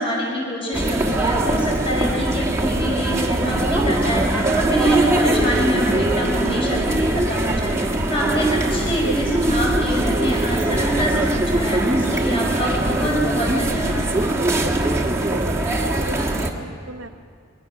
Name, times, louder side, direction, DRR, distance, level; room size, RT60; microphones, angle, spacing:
voice 1, 0.0-14.1, equal, 25° left, -3 dB, 4.8 m, -25 dB
sound 1, 0.7-16.5, right 1 dB, 15° right, 1.3 m, -21 dB
voice 2, 15.1-15.6 16.1-17.1, right 1 dB, 60° right, 2 dB, 0.7 m, -34 dB
22.5 x 20.0 x 6.0 m, 2.4 s
head